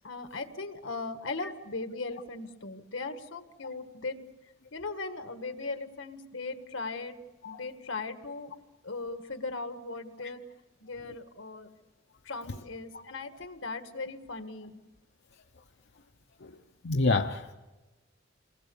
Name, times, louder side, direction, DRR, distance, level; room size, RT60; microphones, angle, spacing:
voice 1, 0.0-4.2 4.7-7.2 7.4-8.5 8.8-10.4 10.8-11.7 12.2-14.8, left 3 dB, 75° left, 1.7 m, -38 dB
voice 2, 16.8-17.5, left 3 dB, 60° left, 0.9 m, -27 dB
28.0 x 21.0 x 7.0 m
head